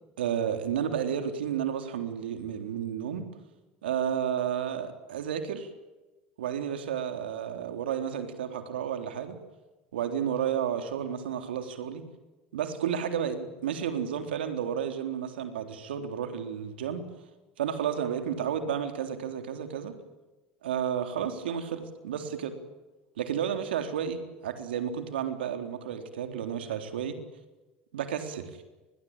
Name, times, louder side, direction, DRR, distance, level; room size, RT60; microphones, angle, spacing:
voice 1, 0.2-3.3 3.8-5.7 6.4-9.4 9.9-12.0 12.5-17.0 17.6-19.9 20.6-22.5 23.2-27.2 27.9-28.5, right 8 dB, 85° right, 7 dB, 3.7 m, -32 dB
30.0 x 22.0 x 9.0 m, 1.1 s
hypercardioid pair, 80°, 5 cm